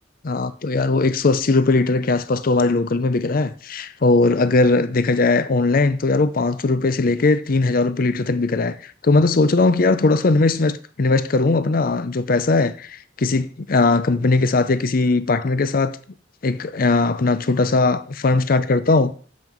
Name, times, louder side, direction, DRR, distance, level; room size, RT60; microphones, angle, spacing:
voice 1, 0.2-16.0 16.4-19.1, left 3 dB, 50° left, 0.6 m, -19 dB
7.1 x 5.8 x 6.1 m
head